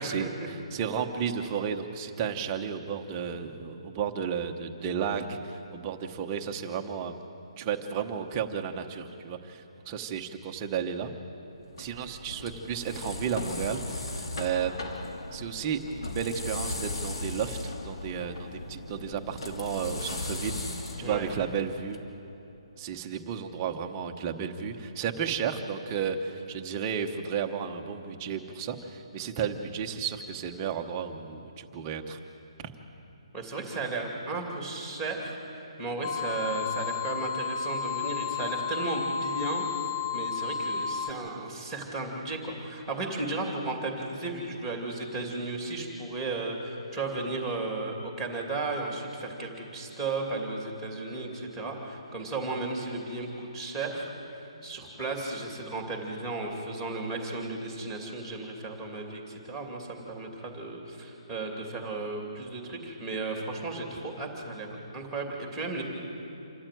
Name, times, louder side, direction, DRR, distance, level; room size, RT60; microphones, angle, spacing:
voice 1, 0.0-7.2 7.6-11.1 11.8-15.0 15.3-20.6 21.0-22.0 22.8-32.2, right 7 dB, 15° right, 4 dB, 1.0 m, -33 dB
sound 1, 11.6-22.0, left 2 dB, 60° left, 2.9 m, -37 dB
voice 2, 21.0-21.3 33.3-65.8, right 3 dB, ahead, 1 dB, 2.6 m, -34 dB
sound 2, 36.0-41.1, left 6 dB, 20° left, 0.6 m, -32 dB
27.0 x 14.0 x 9.3 m, 2.9 s
hypercardioid pair, 175°, 3 cm